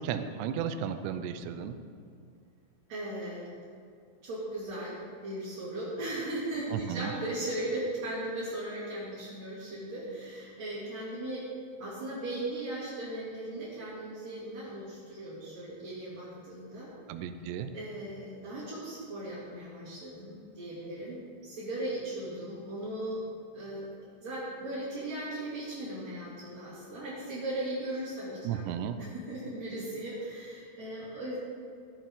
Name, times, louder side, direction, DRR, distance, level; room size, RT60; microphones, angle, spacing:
voice 1, 0.0-1.8 6.7-7.1 17.1-17.7 28.4-29.0, right 8 dB, 80° right, 10 dB, 2.8 m, -34 dB
voice 2, 2.9-3.5 4.2-11.5 11.8-16.9 17.7-23.2 23.5-23.9 24.2-28.6 29.0-31.4, right 1 dB, 45° right, -9 dB, 3.1 m, -37 dB
15.5 x 10.5 x 3.7 m, 2.3 s
omnidirectional pair, 5.0 m